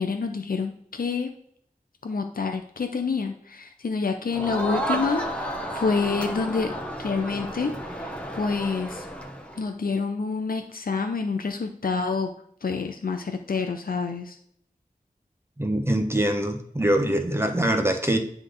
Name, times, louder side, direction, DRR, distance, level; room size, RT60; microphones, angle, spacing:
voice 1, 0.0-1.3 2.0-6.7 7.0-8.1 8.3-9.1 9.6-12.3 12.6-14.4, left 4 dB, 85° left, 5 dB, 0.6 m, -28 dB
Crowd, 4.3-9.6, right 1 dB, 10° left, 1.0 m, -32 dB
voice 2, 15.6-18.2, right 1 dB, 15° right, 4 dB, 1.1 m, -23 dB
9.6 x 3.4 x 3.9 m, 0.67 s
wide cardioid pair, 60°, 15 cm